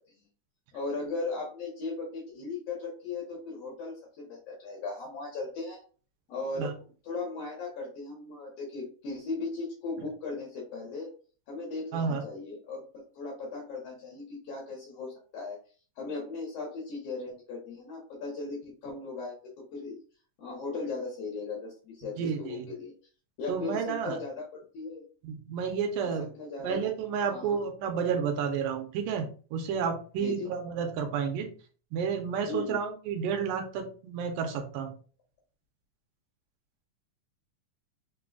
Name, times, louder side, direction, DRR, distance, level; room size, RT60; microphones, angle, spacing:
voice 1, 0.7-5.8 6.3-6.7 7.0-11.1 11.5-15.6 16.0-20.0 20.4-22.9 23.4-25.0 26.0-26.8 27.3-27.6 30.2-30.5 32.5-32.8, left 3 dB, 60° left, -2 dB, 1.9 m, -37 dB
voice 2, 11.9-12.2 22.2-22.7 23.5-24.2 25.2-26.3 26.6-31.5 31.9-34.9, right 6 dB, 85° right, 4 dB, 2.5 m, -31 dB
5.1 x 3.8 x 2.3 m, 0.39 s
omnidirectional pair, 3.7 m